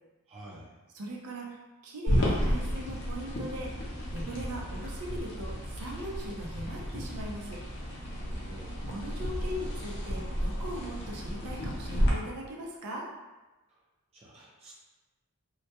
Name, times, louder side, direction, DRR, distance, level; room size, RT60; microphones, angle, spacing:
voice 1, 0.3-0.7 8.1-8.8 14.1-14.7, right 1 dB, 25° right, -5 dB, 0.4 m, -49 dB
voice 2, 0.9-1.6 1.8-7.6 8.4-8.5 8.9-13.1, equal, 90° right, -1 dB, 0.5 m, -40 dB
sound 1, 2.1-12.1, equal, 50° left, 0.5 m, -32 dB
2.2 x 2.1 x 2.7 m, 1.1 s
head